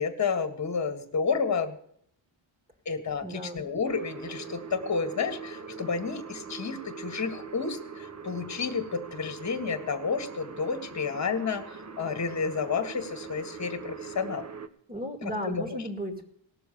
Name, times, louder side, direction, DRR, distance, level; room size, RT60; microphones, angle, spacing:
voice 1, 0.0-1.8 2.8-14.4 15.2-15.8, left 5 dB, 35° left, 8 dB, 1.7 m, -31 dB
voice 2, 3.2-3.6 14.9-16.3, equal, 20° right, 5 dB, 2.4 m, -35 dB
sound 1, 3.9-14.7, right 5 dB, 35° right, 1.1 m, -42 dB
18.0 x 6.9 x 6.8 m, 0.66 s
wide cardioid pair, 140°, 48 cm